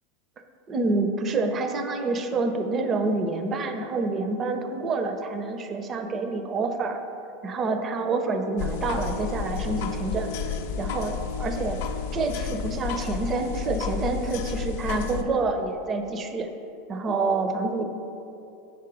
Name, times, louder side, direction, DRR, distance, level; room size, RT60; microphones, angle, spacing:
voice 1, 0.7-7.0 7.4-11.8 12.1-16.5 16.9-17.8, right 3 dB, 25° right, 6 dB, 0.5 m, -27 dB
sound 1, 8.6-15.2, left 6 dB, 65° left, 0.5 m, -31 dB
4.8 x 4.5 x 6.0 m, 2.7 s
supercardioid pair, 135°, 0 cm